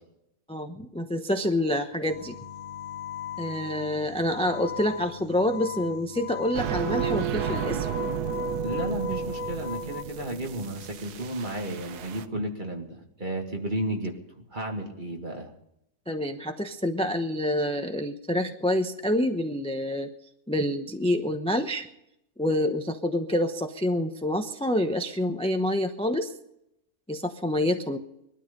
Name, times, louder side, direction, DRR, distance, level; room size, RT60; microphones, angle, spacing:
voice 1, 0.5-2.3 3.4-8.0 16.1-20.1 20.5-21.9 22.4-26.3 27.1-28.0, left 1 dB, 5° left, 5 dB, 0.6 m, -27 dB
sound 1, 2.1-10.0, left 10 dB, 40° left, 1.2 m, -39 dB
sound 2, 6.5-12.2, right 7 dB, 80° right, 1.3 m, -32 dB
voice 2, 8.6-14.2 14.5-15.5, right 1 dB, 30° right, 2 dB, 2.3 m, -33 dB
21.0 x 13.0 x 5.3 m, 0.81 s
omnidirectional pair, 1.6 m